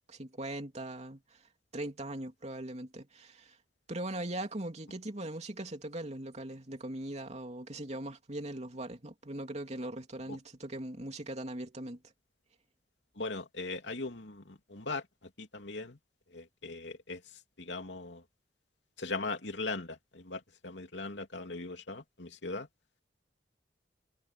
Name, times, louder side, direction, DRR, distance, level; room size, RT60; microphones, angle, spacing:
voice 1, 0.1-1.4 1.7-3.6 3.9-12.0, right 1 dB, 40° right, 3.0 m, -40 dB
voice 2, 13.2-15.0 15.4-16.0 16.3-17.2 17.6-18.2 19.0-22.7, left 3 dB, 80° left, 2.9 m, -39 dB
head